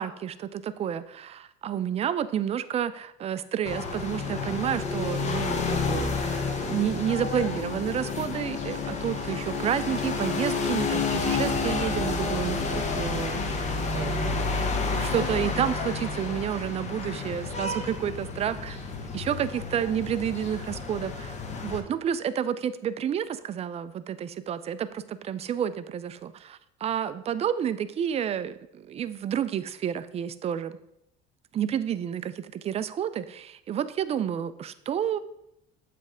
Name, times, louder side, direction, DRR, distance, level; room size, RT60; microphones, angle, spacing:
voice 1, 0.0-18.8 19.1-21.3 21.6-30.8 31.5-35.2, right 9 dB, 30° right, 13 dB, 0.4 m, -30 dB
sound 1, 3.6-21.8, left 4 dB, 35° left, 1.0 m, -30 dB
7.3 x 3.4 x 4.9 m, 0.80 s
supercardioid pair, 95°, 19 cm